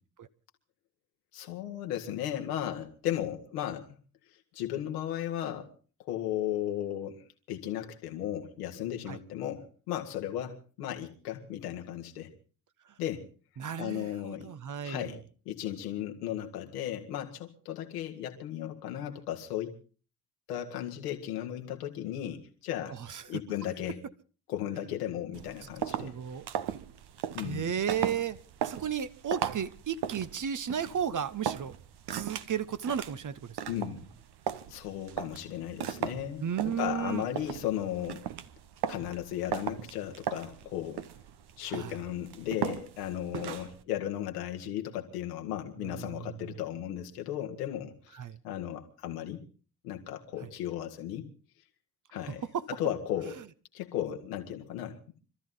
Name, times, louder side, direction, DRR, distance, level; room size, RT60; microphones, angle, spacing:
voice 1, 1.3-3.9 4.5-5.7 6.0-12.3 13.0-13.3 13.8-14.5 14.8-15.2 15.5-19.8 20.5-23.0 23.3-24.0 24.5-26.1 27.3-27.7 33.7-34.1 34.7-38.3 38.9-41.0 41.6-48.2 48.4-49.4 49.8-51.2 52.1-52.4 52.7-53.4 53.7-55.0, left 11 dB, 85° left, 3 dB, 1.8 m, -35 dB
voice 2, 13.6-15.1 23.0-23.2 26.0-26.5 27.4-28.4 28.6-31.8 32.1-33.6 36.4-37.2 41.7-41.9 45.9-46.2 48.1-48.4 52.5-52.6, right 8 dB, 40° right, 14 dB, 1.1 m, -33 dB
sound 1, 25.3-43.8, right 9 dB, 60° right, 1.1 m, -38 dB
25.0 x 13.5 x 3.8 m, 0.37 s
hypercardioid pair, 45°, 45 cm